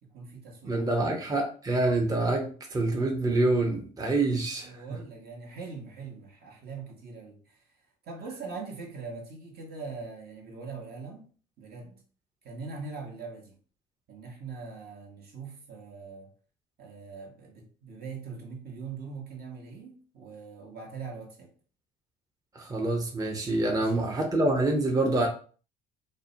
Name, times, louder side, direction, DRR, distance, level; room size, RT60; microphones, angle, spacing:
voice 1, 0.0-1.3 4.5-7.6 8.0-11.3 11.6-12.0 12.4-13.5 14.1-16.3 16.8-21.5 23.6-24.1, right 4 dB, 55° right, 0.9 m, -42 dB
voice 2, 0.6-5.0 22.5-25.3, right 2 dB, 20° right, 0.6 m, -26 dB
2.5 x 2.1 x 2.6 m
hypercardioid pair, 60°, 20 cm